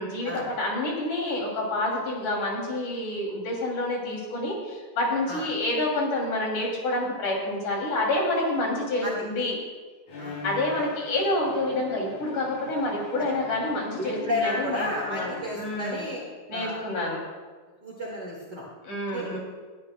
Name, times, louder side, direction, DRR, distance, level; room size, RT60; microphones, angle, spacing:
voice 1, 0.0-9.6 10.4-16.1 16.5-17.2 18.8-19.4, left 1 dB, 90° left, -2 dB, 4.4 m, -28 dB
Bowed string instrument, 10.1-16.1, left 3 dB, 65° left, 4.6 m, -42 dB
voice 2, 10.2-10.9 13.2-13.3 14.0-16.2 16.5-17.1 17.8-18.7 19.1-19.4, left 1 dB, 40° right, -5 dB, 2.3 m, -32 dB
21.0 x 13.0 x 2.2 m, 1.4 s
omnidirectional pair, 3.4 m